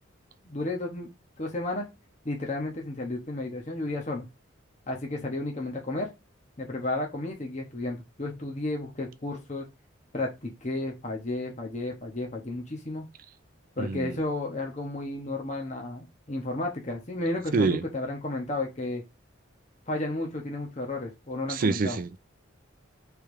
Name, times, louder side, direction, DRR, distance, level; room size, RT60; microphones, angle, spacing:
voice 1, 0.4-1.1 1.4-1.9 2.2-4.3 4.9-6.1 6.6-9.7 10.1-13.1 13.8-19.0 19.9-22.0, left 2 dB, 35° left, 1.0 m, -32 dB
voice 2, 13.8-14.2 17.5-17.8 21.5-22.2, right 4 dB, 45° right, 0.4 m, -26 dB
3.5 x 3.2 x 4.6 m
head